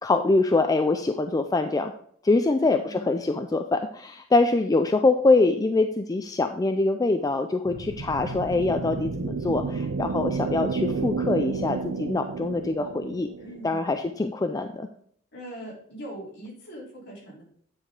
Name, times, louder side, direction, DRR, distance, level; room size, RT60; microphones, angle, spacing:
voice 1, 0.0-1.9 2.2-13.3 13.6-14.9, left 3 dB, 15° left, 6 dB, 0.3 m, -24 dB
voice 2, 2.4-3.1 13.4-13.8 15.3-17.4, equal, 55° left, -5 dB, 3.6 m, -41 dB
sound 1, 7.7-14.1, right 4 dB, 75° right, 0.6 m, -31 dB
9.6 x 4.9 x 3.7 m, 0.63 s
head